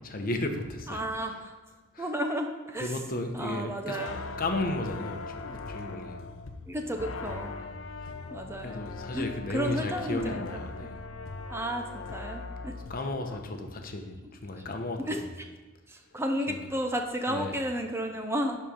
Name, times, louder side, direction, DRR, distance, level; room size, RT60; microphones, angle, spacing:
voice 1, 0.0-1.0 1.3-1.4 1.9-2.1 2.8-4.0 4.4-6.2 7.6-7.7 8.6-11.0 12.9-15.3 16.5-16.7 17.3-17.5, left 2 dB, 45° left, 5 dB, 0.9 m, -34 dB
voice 2, 0.9-1.5 2.0-3.0 3.3-4.2 5.4-5.7 6.7-7.5 8.3-8.8 9.1-10.4 10.8-10.9 11.5-12.7 15.0-15.2 15.9-18.6, equal, 10° right, 4 dB, 0.6 m, -32 dB
sound 1, 3.9-13.4, left 3 dB, 70° left, 0.6 m, -40 dB
11.0 x 4.3 x 5.0 m, 1.3 s
head